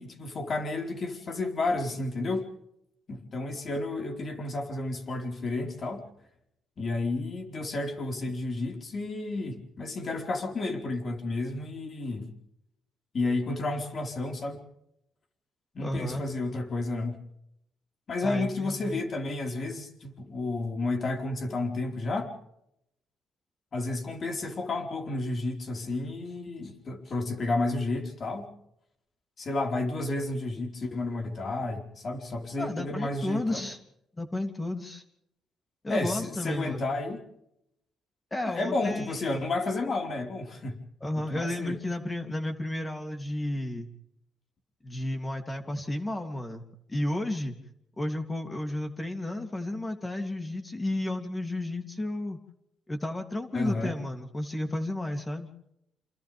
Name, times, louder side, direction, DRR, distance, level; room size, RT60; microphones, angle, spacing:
voice 1, 0.0-2.5 3.1-6.0 6.8-12.3 13.1-14.6 15.7-17.2 18.1-22.3 23.7-28.5 29.4-33.7 35.9-37.2 38.4-40.8 41.3-41.8 53.5-53.9, left 2 dB, 45° left, 3 dB, 4.8 m, -31 dB
voice 2, 15.8-16.3 18.2-19.0 32.6-33.8 34.2-35.0 35.8-36.8 38.3-39.4 41.0-43.9 44.8-46.6 46.9-47.5 48.0-52.4 52.9-55.5, left 1 dB, 20° left, 5 dB, 3.0 m, -32 dB
28.5 x 27.5 x 3.6 m, 0.79 s
cardioid pair, 90°, 0 cm